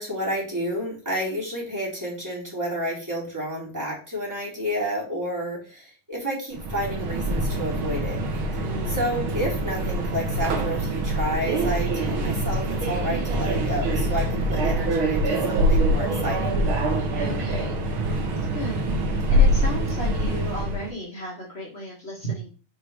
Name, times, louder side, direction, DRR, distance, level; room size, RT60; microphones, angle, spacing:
voice 1, 0.0-8.2 8.6-16.6, equal, 5° right, -4 dB, 3.0 m, -30 dB
Subway metro underground, 6.5-20.9, right 1 dB, 70° right, 1.2 m, -24 dB
voice 2, 8.6-9.0 17.2-17.8 18.5-18.8 19.1-22.5, right 1 dB, 70° left, -3 dB, 0.6 m, -34 dB
7.1 x 4.7 x 4.9 m, 0.35 s
omnidirectional pair, 4.4 m